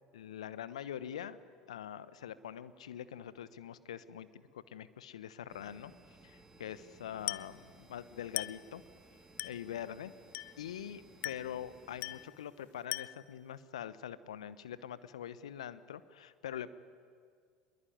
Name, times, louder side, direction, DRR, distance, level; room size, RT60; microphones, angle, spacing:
voice 1, 0.1-1.4 1.7-5.9 6.2-8.8 9.4-10.1 10.6-16.7, left 10 dB, 75° left, 15 dB, 1.1 m, -44 dB
sound 1, 5.5-12.3, right 2 dB, 15° right, 3.0 m, -60 dB
Glass, 7.3-7.6 8.4-8.7 9.4-9.7 10.3-10.7 11.2-11.6 12.0-12.3 12.9-13.3, left 19 dB, 50° left, 0.6 m, -40 dB
26.5 x 21.5 x 9.5 m, 2.1 s
figure-of-eight pair, 75°, 3 cm